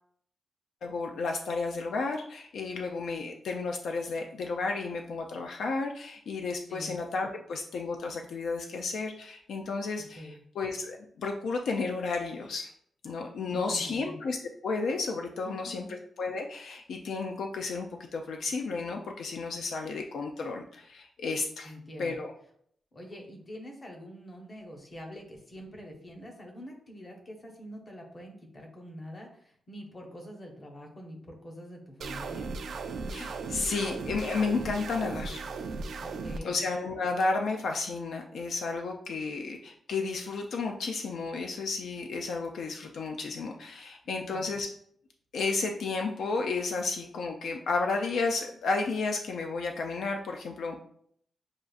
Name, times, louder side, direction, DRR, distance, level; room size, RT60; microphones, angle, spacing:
voice 1, 0.8-10.3 10.6-12.7 13.0-14.4 14.6-21.7 22.0-22.3 33.1-35.4 36.4-44.7 45.3-50.8, left 4 dB, 70° left, 3 dB, 0.4 m, -32 dB
voice 2, 10.0-10.4 13.4-14.2 15.4-16.0 21.6-22.2 22.9-32.5 36.0-36.6 44.1-44.4, equal, 25° left, 1 dB, 0.8 m, -45 dB
sound 1, 32.0-36.4, right 4 dB, 60° right, 0.3 m, -37 dB
6.3 x 2.4 x 2.3 m, 0.65 s
wide cardioid pair, 170°, 0 cm